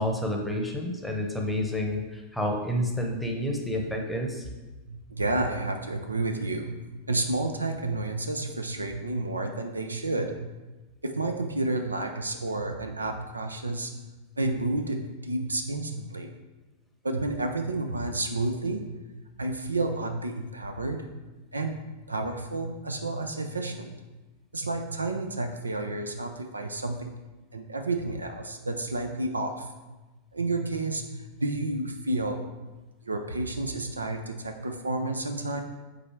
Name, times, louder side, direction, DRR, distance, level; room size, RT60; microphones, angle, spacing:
voice 1, 0.0-4.5, left 1 dB, ahead, 1 dB, 0.9 m, -29 dB
voice 2, 4.9-10.5 11.0-14.0 14.4-16.3 17.0-21.1 21.5-21.7 22.1-24.0 24.5-27.1 27.5-29.7 30.3-32.5 33.0-35.6, right 2 dB, 80° right, 5 dB, 0.5 m, -30 dB
5.5 x 4.1 x 4.4 m, 1.1 s
figure-of-eight pair, 90°, 0 cm